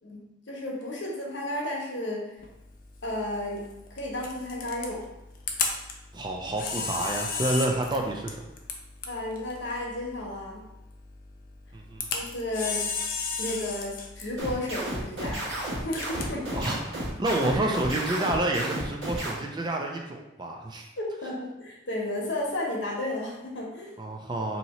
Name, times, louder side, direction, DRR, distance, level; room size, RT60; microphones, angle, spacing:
voice 1, 0.0-2.4 3.0-5.1 9.1-10.6 12.1-12.9 13.4-15.5 15.8-16.6 21.0-23.9, left 1 dB, 70° left, -1 dB, 0.9 m, -33 dB
Camera, 2.4-17.9, left 5 dB, 45° left, 0.4 m, -36 dB
voice 2, 6.1-8.4 11.7-12.1 16.5-20.9 24.0-24.6, right 1 dB, 20° right, 1 dB, 0.3 m, -29 dB
sound 1, 14.4-19.3, right 1 dB, 90° right, 1.4 m, -32 dB
2.8 x 2.8 x 4.1 m, 0.94 s
head